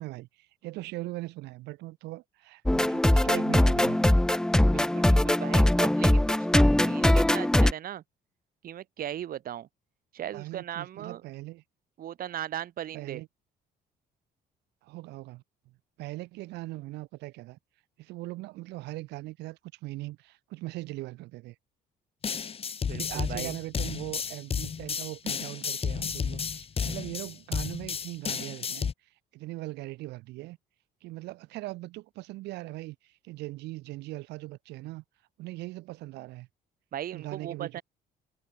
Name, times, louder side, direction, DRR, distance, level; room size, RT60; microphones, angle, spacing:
voice 1, 0.0-4.2 10.3-11.6 12.9-13.3 14.8-15.4 16.0-17.6 18.0-21.6 22.9-28.9 29.3-30.6 31.0-35.0 35.4-36.5 37.1-37.8, right 19 dB, 85° right, 1.9 m, -40 dB
sound 1, 2.7-7.7, left 1 dB, 5° left, 0.5 m, -21 dB
voice 2, 4.7-8.0 8.6-9.7 10.1-11.2 12.0-13.2 22.8-23.5 36.9-37.8, right 11 dB, 60° right, 5.7 m, -38 dB
sound 2, 22.2-28.9, left 6 dB, 35° left, 1.9 m, -32 dB
cardioid pair, 110°, 17 cm